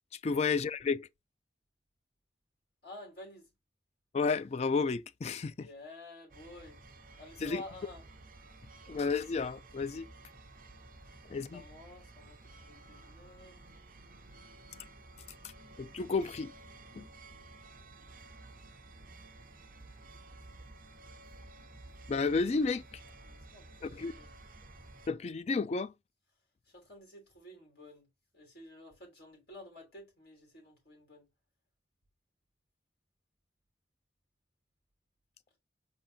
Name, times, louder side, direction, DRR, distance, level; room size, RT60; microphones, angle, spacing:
voice 1, 0.2-1.1 4.1-5.7 7.4-7.6 8.9-10.1 11.3-11.6 15.8-16.5 17.0-17.1 22.1-22.8 23.8-24.1 25.1-25.9, left 4 dB, 35° left, 0.3 m, -31 dB
voice 2, 2.8-3.5 5.6-6.8 7.2-8.0 11.5-13.6 23.2-24.3 26.7-28.1 28.3-31.3, left 2 dB, 55° left, 3.3 m, -51 dB
sound 1, 6.3-25.1, right 2 dB, 50° right, 0.9 m, -53 dB
5.0 x 3.8 x 2.7 m
head